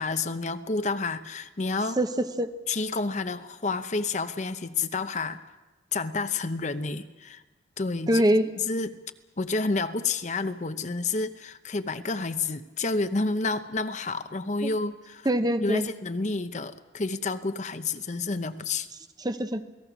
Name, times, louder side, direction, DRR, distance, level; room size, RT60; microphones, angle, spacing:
voice 1, 0.0-2.0 2.7-5.4 5.9-7.4 7.8-8.2 8.6-8.9 9.4-15.3 15.6-18.9, left 3 dB, 40° left, 10 dB, 0.8 m, -29 dB
voice 2, 2.0-2.5 8.1-8.5 14.6-14.7 15.2-15.9 19.2-19.6, right 1 dB, 20° right, 10 dB, 0.9 m, -24 dB
28.5 x 18.5 x 6.1 m, 1.1 s
head